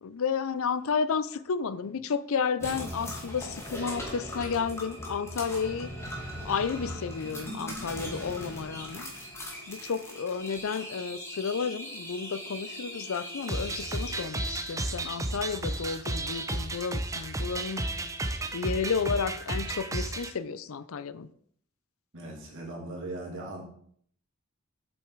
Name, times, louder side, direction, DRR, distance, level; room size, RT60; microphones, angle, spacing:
voice 1, 0.0-5.9 6.4-9.1 9.7-17.8 18.5-21.3, left 5 dB, 70° left, 16 dB, 0.5 m, -32 dB
sound 1, 2.6-14.2, equal, 15° left, 2.0 m, -39 dB
sound 2, 13.5-20.3, right 2 dB, 15° right, 0.7 m, -33 dB
voice 2, 22.1-23.6, right 2 dB, 65° right, -2 dB, 3.0 m, -39 dB
7.8 x 7.2 x 4.6 m, 0.62 s
head